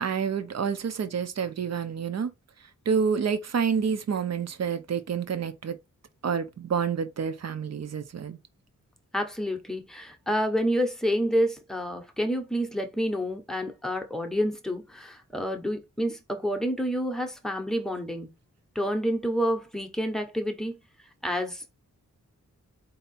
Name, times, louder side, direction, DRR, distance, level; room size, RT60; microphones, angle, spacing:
voice 1, 0.0-2.3 2.9-5.8 6.2-8.4, right 6 dB, 60° right, 0.7 m, -28 dB
voice 2, 9.1-18.3 18.7-20.8 21.2-21.7, equal, ahead, 0.8 m, -28 dB
4.5 x 2.7 x 4.1 m
wide cardioid pair, 180°, 30 cm